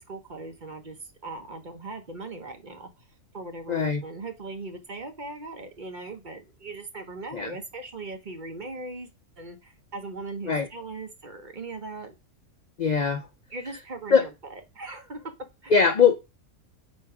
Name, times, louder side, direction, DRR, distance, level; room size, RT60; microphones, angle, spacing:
voice 1, 0.0-2.9 3.3-9.1 9.4-12.1 13.5-15.3 15.6-15.8, right 3 dB, 35° right, 1.0 m, -39 dB
voice 2, 3.7-4.0 7.3-7.5 10.5-10.7 12.8-13.2 14.1-14.3 15.7-16.2, left 6 dB, 65° left, 0.4 m, -21 dB
4.6 x 4.5 x 4.8 m
omnidirectional pair, 1.5 m